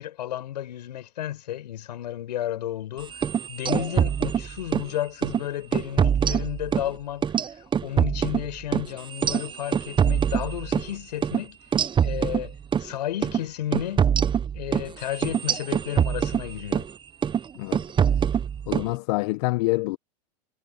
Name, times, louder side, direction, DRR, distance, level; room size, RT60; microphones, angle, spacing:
voice 1, 0.0-11.6 12.0-14.1 14.5-16.9, left 12 dB, 80° left, 5.8 m, -33 dB
sound 1, 3.1-4.9 5.2-5.4 5.7-6.9 7.2-10.9 11.2-11.4 11.7-12.9 13.2-13.4 13.7-16.9 17.2-17.5 17.7-18.9, right 8 dB, 20° right, 0.9 m, -24 dB
voice 2, 18.7-20.0, left 22 dB, 65° left, 1.3 m, -26 dB
hypercardioid pair, 100°, 21 cm